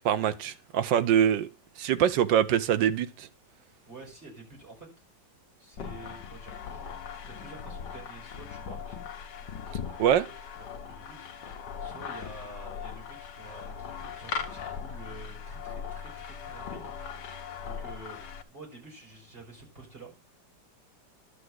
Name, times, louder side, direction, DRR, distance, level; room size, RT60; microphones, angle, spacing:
voice 1, 0.0-1.5 1.8-3.3 10.0-10.2, right 9 dB, 75° right, 1.4 m, -24 dB
voice 2, 3.9-4.9 5.6-6.9 7.2-9.1 9.8-18.2 18.5-20.4, right 2 dB, 30° right, 5.7 m, -49 dB
sound 1, 5.8-18.4, left 6 dB, 70° left, 1.6 m, -39 dB
12.0 x 5.0 x 7.9 m
omnidirectional pair, 2.0 m